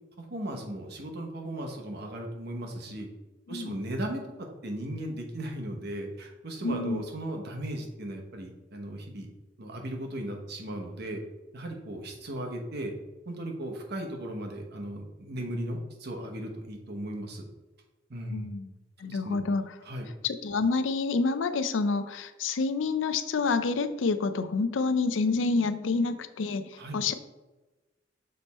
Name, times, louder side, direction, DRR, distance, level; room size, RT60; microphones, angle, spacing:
voice 1, 0.2-3.1 3.5-9.3 9.6-11.2 11.5-12.9 13.3-17.4 18.1-18.5 19.0-19.4 19.8-20.1 26.8-27.0, right 1 dB, 60° right, 2 dB, 1.0 m, -36 dB
voice 2, 6.6-7.0 18.3-18.7 19.0-19.6 20.2-27.1, left 4 dB, 80° left, 11 dB, 0.5 m, -28 dB
6.6 x 3.5 x 4.2 m, 1.1 s
head